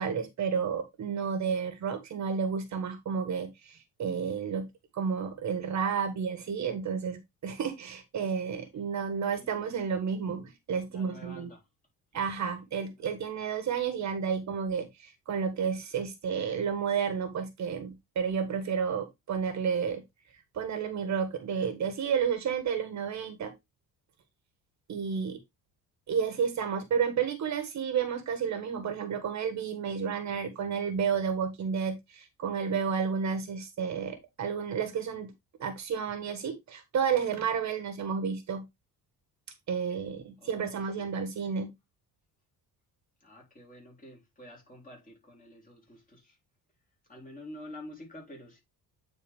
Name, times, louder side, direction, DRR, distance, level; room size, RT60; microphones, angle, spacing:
voice 1, 0.0-4.7 4.9-11.5 12.1-20.0 20.5-23.5 24.9-25.4 26.1-35.3 35.6-38.6 39.7-41.7, right 6 dB, 50° right, 1.4 m, -31 dB
voice 2, 9.4-9.7 10.9-11.7 13.0-13.1 40.4-41.1 43.2-46.4 47.1-48.6, left 1 dB, 20° left, 3.6 m, -49 dB
9.0 x 4.1 x 3.5 m
cardioid pair, 155°, 37 cm